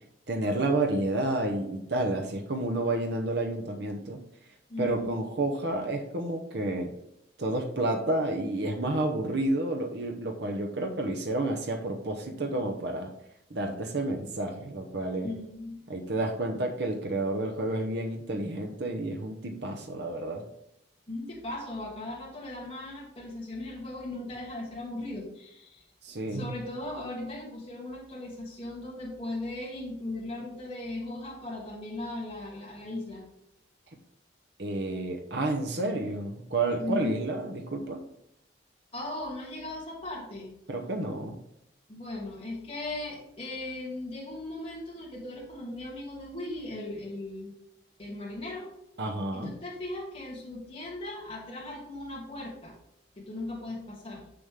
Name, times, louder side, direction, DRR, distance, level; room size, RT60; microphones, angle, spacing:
voice 1, 0.3-4.2 4.8-6.9 7.4-13.1 13.5-15.3 15.9-20.4 26.0-26.5 34.6-38.0 40.7-41.4 49.0-49.5, right 2 dB, 60° right, 2 dB, 0.9 m, -30 dB
voice 2, 4.7-5.1 15.2-15.8 21.1-25.9 26.3-33.2 36.8-37.2 38.9-40.5 41.9-47.6 48.0-48.8 49.3-52.7 53.2-54.3, left 2 dB, 30° left, -4 dB, 2.4 m, -38 dB
7.1 x 6.9 x 3.6 m, 0.79 s
head